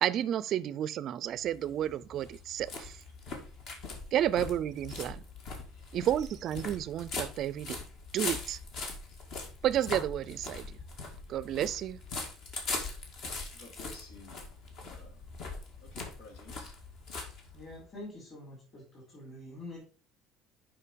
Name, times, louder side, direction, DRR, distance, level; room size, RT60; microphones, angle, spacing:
voice 1, 0.0-3.0 4.1-5.2 5.9-7.8 8.1-8.6 9.6-10.7 11.3-12.0, right 11 dB, 40° right, 0.4 m, -31 dB
sound 1, 1.4-17.9, left 3 dB, 50° left, 2.0 m, -41 dB
voice 2, 13.5-14.4 14.8-15.2 15.8-16.7, left 3 dB, 85° left, 2.9 m, -53 dB
voice 3, 17.5-19.8, left 1 dB, 30° left, 3.9 m, -46 dB
6.7 x 5.3 x 5.1 m
cardioid pair, 170°, 0 cm